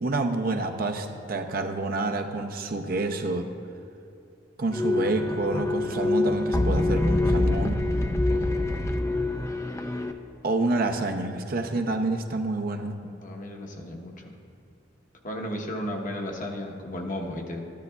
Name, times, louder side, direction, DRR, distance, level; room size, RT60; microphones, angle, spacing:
voice 1, 0.0-3.5 4.6-7.8 10.4-12.9, right 2 dB, 55° right, 5 dB, 0.6 m, -28 dB
sound 1, 4.7-10.1, left 2 dB, 15° left, 0.4 m, -25 dB
voice 2, 8.3-8.7 13.0-14.3 15.2-17.7, left 1 dB, 50° left, 1 dB, 1.0 m, -35 dB
13.5 x 10.5 x 2.3 m, 2.5 s
head